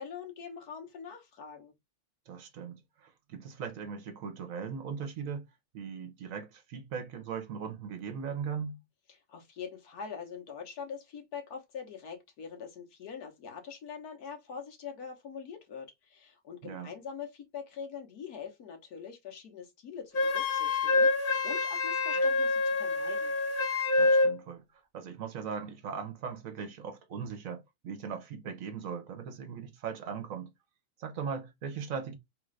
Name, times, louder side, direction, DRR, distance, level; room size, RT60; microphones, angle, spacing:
voice 1, 0.0-1.7 9.1-23.3, left 6 dB, 85° left, 1.6 m, -43 dB
voice 2, 2.3-5.5 5.7-8.8 16.6-16.9 24.0-30.5 31.0-32.2, right 6 dB, 65° right, 1.2 m, -39 dB
Wind instrument woodwind instrument, 20.1-24.3, left 3 dB, 40° left, 1.0 m, -26 dB
3.7 x 2.5 x 3.2 m
omnidirectional pair, 1.6 m